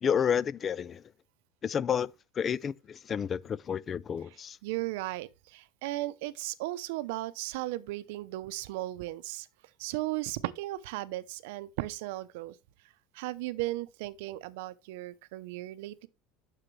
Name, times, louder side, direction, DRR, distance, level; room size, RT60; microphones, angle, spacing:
voice 1, 0.0-1.0 1.6-2.1 2.4-4.6, left 8 dB, 25° left, 0.3 m, -30 dB
voice 2, 4.6-9.5 9.8-12.5 13.1-16.1, right 17 dB, 80° right, 0.7 m, -36 dB
9.9 x 6.6 x 3.3 m
cardioid pair, 145°, 0 cm